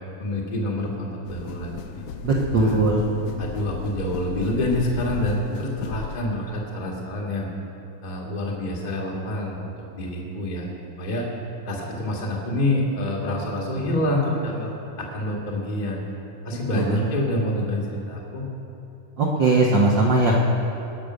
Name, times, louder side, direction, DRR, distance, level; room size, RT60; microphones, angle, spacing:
voice 1, 0.2-2.0 2.5-2.8 3.4-7.5 8.0-10.7 11.0-11.2 11.6-16.0 16.4-18.5, left 1 dB, 25° left, -2 dB, 1.0 m, -27 dB
sound 1, 1.3-6.3, left 5 dB, 85° left, 2.1 m, -35 dB
voice 2, 2.2-3.1 16.5-17.0 19.2-20.4, right 2 dB, 70° right, -3 dB, 1.1 m, -20 dB
19.0 x 6.6 x 6.1 m, 2.9 s
omnidirectional pair, 3.6 m